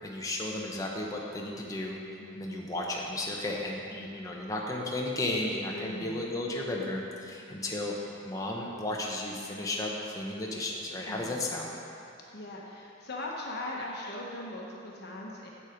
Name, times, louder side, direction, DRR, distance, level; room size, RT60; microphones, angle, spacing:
voice 1, 0.0-2.0 2.3-7.9 8.2-11.7, left 1 dB, 15° left, -2 dB, 0.9 m, -34 dB
voice 2, 2.2-2.6 5.7-6.3 11.1-11.4 12.3-15.5, left 1 dB, 50° left, -3 dB, 1.1 m, -40 dB
8.2 x 7.2 x 5.1 m, 2.8 s
head